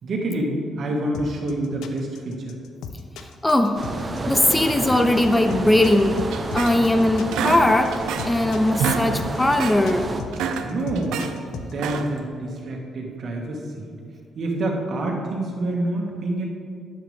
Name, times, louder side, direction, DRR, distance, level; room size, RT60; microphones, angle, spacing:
voice 1, 0.0-2.6 10.6-11.2 11.6-13.9 14.4-16.4, right 1 dB, 60° right, 0 dB, 2.2 m, -27 dB
sound 1, 1.1-11.7, left 6 dB, 85° left, 0.8 m, -36 dB
voice 2, 3.4-3.8 4.3-6.2 6.5-10.1, left 1 dB, 15° left, 7 dB, 0.7 m, -19 dB
sound 2, 3.8-10.2, right 2 dB, 30° right, 1.0 m, -30 dB
sound 3, 6.3-7.0 7.3-8.4 8.7-9.1 9.4-9.8 10.2-11.3 11.7-12.2, right 6 dB, 90° right, 0.8 m, -27 dB
12.0 x 9.7 x 3.7 m, 2.3 s
cardioid pair, 90°, 0 cm